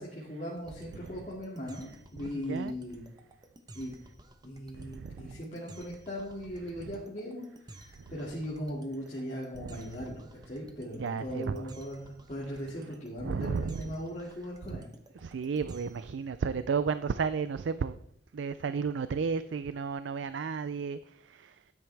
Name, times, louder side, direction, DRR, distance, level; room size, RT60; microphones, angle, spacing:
voice 1, 0.0-3.0 3.7-3.9 4.4-14.9, equal, 40° left, -6 dB, 2.3 m, -39 dB
sound 1, 0.6-16.2, right 1 dB, 20° right, 0.9 m, -53 dB
voice 2, 0.9-1.3 2.3-2.7 4.7-5.4 8.0-8.1 9.5-9.9 10.9-11.7 13.2-13.9 14.6-14.8 15.2-18.0 18.3-21.7, right 5 dB, 85° right, 14 dB, 0.4 m, -33 dB
12.5 x 9.5 x 3.4 m, 0.68 s
head